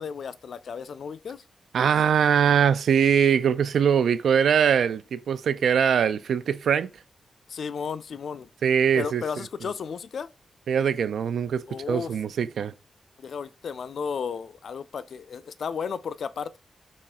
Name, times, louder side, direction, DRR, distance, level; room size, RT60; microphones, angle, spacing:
voice 1, 0.0-1.4 7.5-8.5 9.0-10.3 11.7-12.1 13.2-16.6, left 6 dB, 60° left, 0.3 m, -34 dB
voice 2, 1.7-6.9 8.6-9.2 10.7-12.7, right 7 dB, 80° right, 0.3 m, -22 dB
4.2 x 3.0 x 3.6 m
wide cardioid pair, 150°, 0 cm